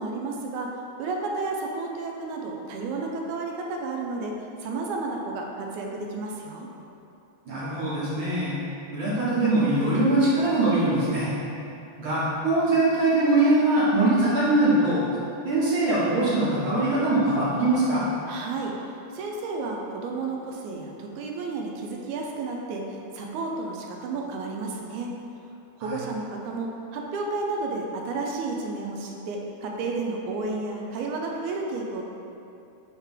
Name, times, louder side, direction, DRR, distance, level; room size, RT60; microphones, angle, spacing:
voice 1, 0.0-6.7 18.3-25.1 25.8-32.0, right 3 dB, 90° right, 0 dB, 2.1 m, -32 dB
voice 2, 7.5-8.5 8.9-11.3 12.0-15.0 15.4-18.0 25.8-25.9, right 2 dB, 50° right, -10 dB, 1.8 m, -22 dB
9.2 x 3.4 x 3.6 m, 2.7 s
omnidirectional pair, 3.4 m